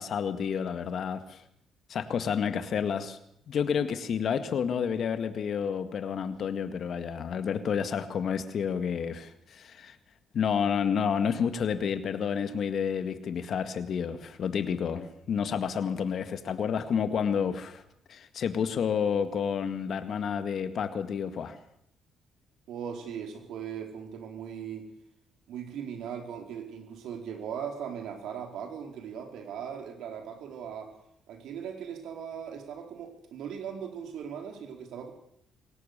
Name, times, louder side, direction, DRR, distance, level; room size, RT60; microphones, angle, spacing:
voice 1, 0.0-1.4 1.9-3.2 3.5-10.0 10.3-17.8 18.1-21.6, left 7 dB, 60° left, 9 dB, 1.9 m, -30 dB
voice 2, 22.7-24.9 25.5-30.9 31.3-35.1, right 8 dB, 80° right, 4 dB, 4.4 m, -39 dB
22.0 x 18.0 x 6.9 m, 0.73 s
cardioid pair, 90°, 0 cm